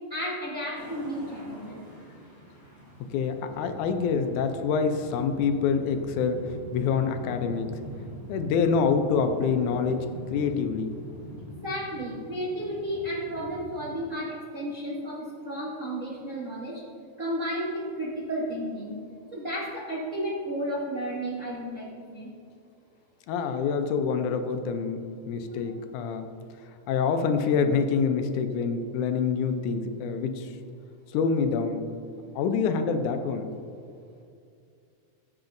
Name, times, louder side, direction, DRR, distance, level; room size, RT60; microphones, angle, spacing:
voice 1, 0.1-1.8 11.6-16.8 17.2-19.0 19.3-21.9 22.1-22.3, equal, 85° right, -6 dB, 0.7 m, -32 dB
sound 1, 0.7-13.9, equal, 15° left, 1.7 m, -43 dB
voice 2, 3.1-7.8 8.3-10.9 23.3-26.3 26.9-30.6 31.1-31.9 32.4-33.5, left 5 dB, 85° left, 7 dB, 2.1 m, -26 dB
15.5 x 7.9 x 2.6 m, 2.4 s
omnidirectional pair, 3.5 m